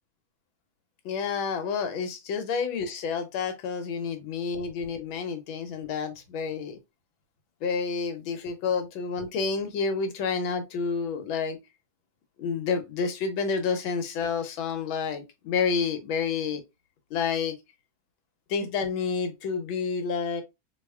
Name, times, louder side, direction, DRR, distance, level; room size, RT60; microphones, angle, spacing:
voice 1, 1.0-6.8 7.6-11.6 12.4-16.6 17.1-17.5 18.5-20.4, left 5 dB, 90° left, 1.6 m, -29 dB
4.1 x 3.0 x 2.2 m
omnidirectional pair, 2.2 m